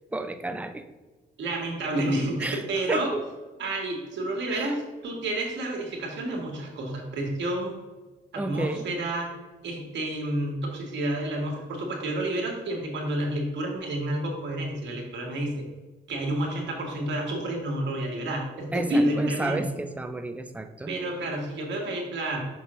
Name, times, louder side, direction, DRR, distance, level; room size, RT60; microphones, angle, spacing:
voice 1, 0.1-0.9 2.4-2.6 2.9-3.2 4.5-4.7 8.4-8.9 18.7-21.0, right 2 dB, 5° right, 8 dB, 0.4 m, -31 dB
voice 2, 1.4-3.1 3.6-7.7 8.3-9.3 9.6-15.6 16.1-19.6 20.9-22.4, right 1 dB, 65° right, 0 dB, 1.7 m, -29 dB
5.8 x 5.4 x 3.1 m, 1.2 s
cardioid pair, 90°, 20 cm